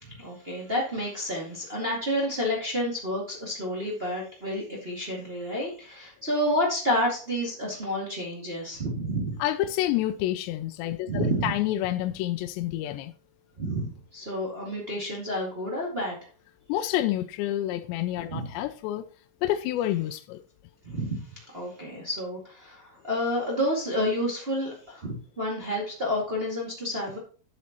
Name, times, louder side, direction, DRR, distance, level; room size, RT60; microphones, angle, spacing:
voice 1, 0.0-9.4 11.1-11.4 13.6-16.1 18.3-18.4 20.8-21.2 21.5-27.2, equal, 45° right, 0.7 m, -30 dB
voice 2, 9.4-13.1 16.7-19.1 19.4-20.4, left 13 dB, 80° left, 2.6 m, -28 dB
11.0 x 7.3 x 3.0 m
omnidirectional pair, 5.3 m